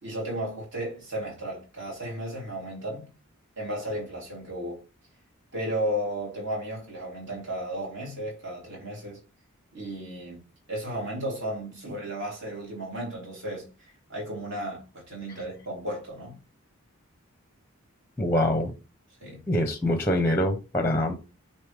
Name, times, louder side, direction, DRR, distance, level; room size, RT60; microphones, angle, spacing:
voice 1, 0.0-3.1 3.6-4.8 5.5-9.2 9.7-10.4 10.7-13.7 14.1-16.4 19.2-19.4, right 1 dB, 55° right, 3.5 m, -34 dB
voice 2, 18.2-18.7 19.5-21.1, left 1 dB, 10° left, 0.7 m, -24 dB
6.7 x 4.2 x 3.5 m
head